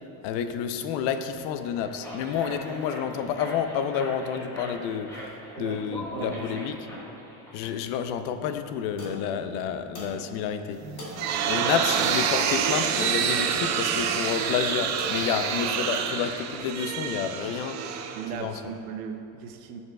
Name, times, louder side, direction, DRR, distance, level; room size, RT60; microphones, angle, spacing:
voice 1, 0.2-5.3 5.6-6.9 7.5-10.8 11.5-17.8 18.4-18.7, left 8 dB, 70° left, 9 dB, 0.6 m, -29 dB
sound 1, 1.6-7.7, equal, 5° left, 1.2 m, -41 dB
voice 2, 5.6-6.4 11.4-11.7 15.6-15.9 18.1-19.8, right 6 dB, 80° right, 5 dB, 0.8 m, -37 dB
sound 2, 9.0-16.7, equal, 40° left, 1.6 m, -43 dB
sound 3, 10.8-18.7, right 8 dB, 40° right, 0.5 m, -27 dB
13.5 x 5.6 x 2.3 m, 2.8 s
cardioid pair, 150°, 43 cm